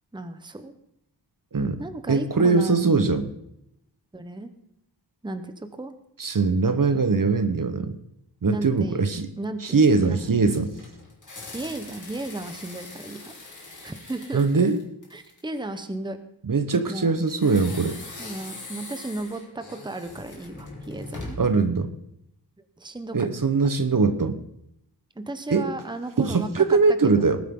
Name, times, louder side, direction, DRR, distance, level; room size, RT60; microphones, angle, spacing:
voice 1, 0.1-0.7 1.8-3.1 4.1-4.5 5.2-5.9 8.5-9.1 9.4-10.2 11.5-13.3 13.8-14.6 15.1-16.2 16.9-17.2 18.2-21.4 22.8-23.3 25.2-26.6 27.0-27.3, right 2 dB, 10° right, 9 dB, 1.0 m, -34 dB
voice 2, 1.5-1.8 2.1-3.3 6.2-8.0 8.4-9.3 9.6-10.7 14.3-14.8 16.4-18.0 21.4-21.9 23.1-24.4 25.5-25.6 26.2-27.4, right 4 dB, 50° right, 9 dB, 1.1 m, -21 dB
sound 1, 10.2-15.5 17.3-21.6, left 2 dB, 45° left, 2.9 m, -41 dB
20.0 x 9.1 x 3.8 m, 0.77 s
wide cardioid pair, 115°, 43 cm